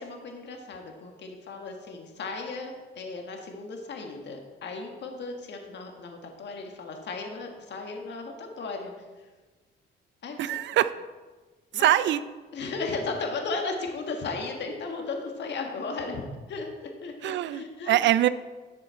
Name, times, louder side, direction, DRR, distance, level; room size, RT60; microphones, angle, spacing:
voice 1, 0.0-9.3 10.2-10.6 11.7-12.2 12.5-18.1, left 3 dB, 60° left, 3 dB, 1.6 m, -36 dB
voice 2, 10.4-10.9 11.7-12.2 17.2-18.3, right 13 dB, 65° right, 14 dB, 0.4 m, -23 dB
10.5 x 6.8 x 4.4 m, 1.3 s
cardioid pair, 90°, 20 cm